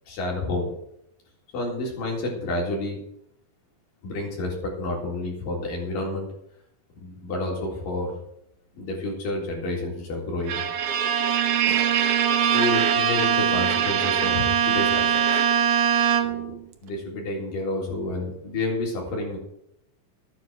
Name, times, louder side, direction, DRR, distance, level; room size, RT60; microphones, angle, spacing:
voice 1, 0.1-0.7 1.5-3.0 4.0-6.3 7.0-8.1 8.8-10.6 11.7-11.9 12.5-15.2 16.2-16.5 16.8-19.4, left 2 dB, 70° left, -1 dB, 5.3 m, -29 dB
Bowed string instrument, 10.5-16.6, right 8 dB, 70° right, 1.4 m, -22 dB
12.5 x 9.5 x 6.3 m, 0.77 s
omnidirectional pair, 4.1 m